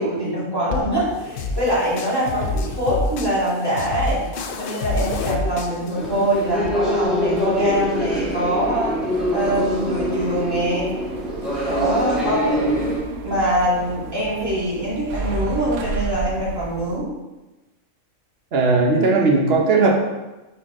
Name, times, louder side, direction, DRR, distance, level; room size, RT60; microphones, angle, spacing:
voice 1, 0.0-4.2 4.6-8.9 9.3-10.9 11.6-13.0 13.2-17.1, right 1 dB, 15° right, -8 dB, 2.4 m, -23 dB
sound 1, 0.7-6.7, left 2 dB, 55° left, 0.6 m, -28 dB
sound 2, 5.9-13.0, equal, ahead, 1.4 m, -24 dB
sound 3, 6.3-17.0, right 3 dB, 70° right, 1.0 m, -34 dB
voice 2, 18.5-20.0, right 3 dB, 50° right, 0 dB, 1.3 m, -17 dB
7.3 x 4.4 x 3.8 m, 1.1 s
omnidirectional pair, 1.4 m